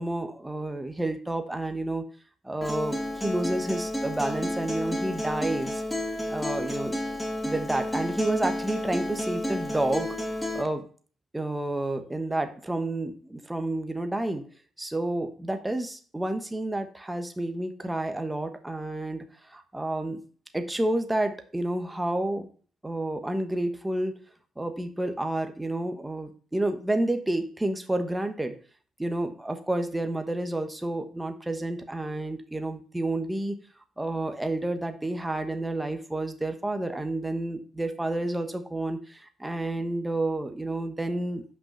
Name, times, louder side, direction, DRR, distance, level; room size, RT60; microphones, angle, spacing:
voice 1, 0.0-2.1 2.4-5.8 6.3-7.0 7.4-10.1 10.5-10.9 11.3-14.4 14.8-20.2 20.5-22.5 22.8-24.2 24.6-28.6 29.0-33.6 34.0-41.4, right 1 dB, 10° right, 6 dB, 1.2 m, -30 dB
Acoustic guitar, 2.6-10.6, left 1 dB, 10° left, 2.8 m, -31 dB
5.9 x 5.2 x 6.9 m, 0.42 s
cardioid pair, 90°, 0 cm